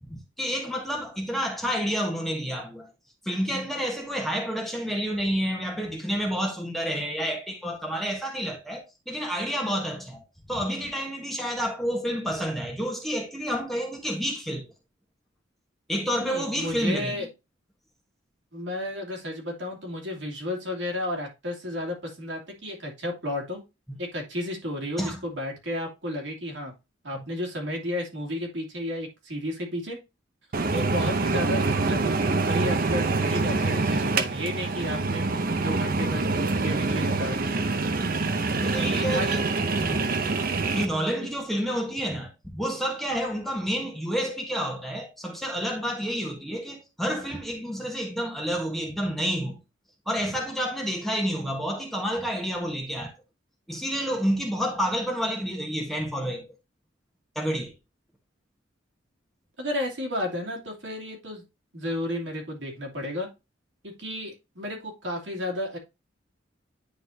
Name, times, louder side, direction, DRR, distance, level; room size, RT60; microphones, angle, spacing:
voice 1, 0.0-2.9 3.2-14.7 15.9-17.3 23.9-24.0 25.0-25.2 27.1-27.3 38.6-39.5 39.8-40.1 40.7-49.6 50.1-53.1 53.7-56.5 57.3-57.7, equal, ahead, 1.3 m, -29 dB
voice 2, 16.2-17.3 18.5-23.6 24.0-26.7 27.0-30.0 30.7-32.2 32.4-35.2 35.6-37.6 38.5-39.3 59.6-61.4 61.7-63.3 63.8-65.8, left 1 dB, 75° right, 2.7 m, -32 dB
sound 1, 30.5-40.8, right 3 dB, 50° right, 0.7 m, -25 dB
9.7 x 4.3 x 2.8 m
head